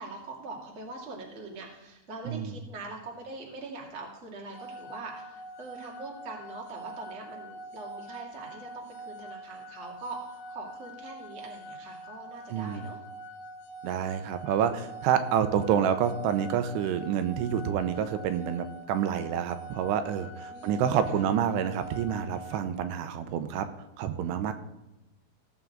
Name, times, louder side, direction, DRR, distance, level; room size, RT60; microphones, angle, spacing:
voice 1, 0.0-13.0 20.5-21.2, right 3 dB, 25° right, -1 dB, 1.5 m, -43 dB
sound 1, 4.5-22.6, right 1 dB, 80° left, 2.5 m, -45 dB
voice 2, 12.5-12.9 13.8-23.7 24.0-24.5, right 8 dB, 90° right, 10 dB, 2.8 m, -28 dB
17.0 x 7.3 x 3.8 m, 0.97 s
omnidirectional pair, 4.9 m